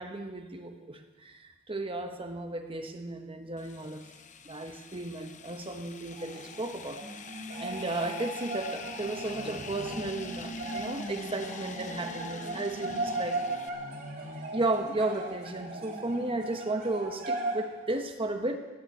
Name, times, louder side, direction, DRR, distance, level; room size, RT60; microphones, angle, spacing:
voice 1, 0.0-4.0 4.4-7.0 7.3-13.4 14.5-18.6, right 2 dB, 25° right, 5 dB, 1.2 m, -34 dB
sound 1, 3.6-13.7, left 3 dB, 35° left, 0.8 m, -44 dB
sound 2, 6.1-17.6, right 2 dB, 45° right, 4.1 m, -38 dB
18.0 x 8.9 x 8.6 m, 1.2 s
head